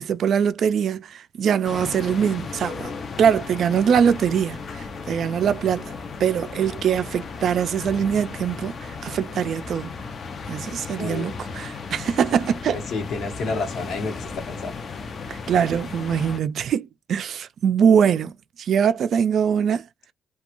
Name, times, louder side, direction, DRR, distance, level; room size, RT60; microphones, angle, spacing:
voice 1, 0.0-2.9 3.2-5.9 6.2-9.9 10.5-12.8 15.3-19.8, right 7 dB, 65° right, 0.4 m, -22 dB
sound 1, 1.6-16.4, left 5 dB, 50° left, 0.5 m, -35 dB
voice 2, 11.0-11.3 12.7-14.7, left 3 dB, 70° left, 1.0 m, -30 dB
2.4 x 2.3 x 2.9 m
cardioid pair, 90°, 0 cm